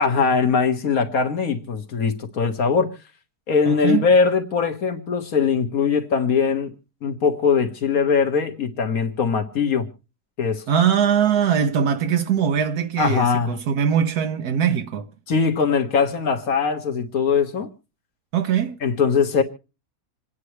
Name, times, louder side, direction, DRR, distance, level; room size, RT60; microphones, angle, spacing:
voice 1, 0.0-2.9 3.5-6.7 7.0-9.9 10.4-10.7 13.0-13.5 15.3-17.7 18.8-19.4, left 5 dB, 70° left, 2.0 m, -21 dB
voice 2, 3.7-4.1 10.7-15.1 18.3-18.8, right 8 dB, 80° right, 1.4 m, -21 dB
27.5 x 9.7 x 3.2 m
omnidirectional pair, 1.6 m